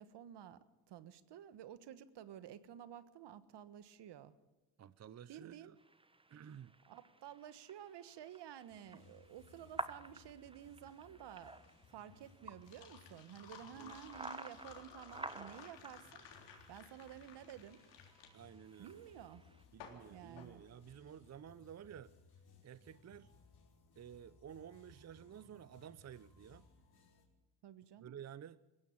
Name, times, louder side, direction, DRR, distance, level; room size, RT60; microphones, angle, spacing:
voice 1, 0.0-4.3 5.3-5.8 6.9-11.6 11.9-16.3 16.7-17.8 18.8-19.4 20.1-20.6 27.6-28.2, right 10 dB, 65° right, 1.4 m, -52 dB
voice 2, 4.8-5.8 6.3-6.7 13.8-14.0 18.3-19.0 19.7-22.1 22.6-23.3 24.0-26.7 28.0-28.6, right 9 dB, 35° right, 0.7 m, -53 dB
sound 1, 5.8-19.6, right 2 dB, 10° right, 1.1 m, -52 dB
sound 2, 8.7-27.2, left 4 dB, 55° left, 4.7 m, -65 dB
sound 3, 11.4-21.3, left 7 dB, 80° left, 3.8 m, -57 dB
20.5 x 16.0 x 8.8 m
supercardioid pair, 75°, 44 cm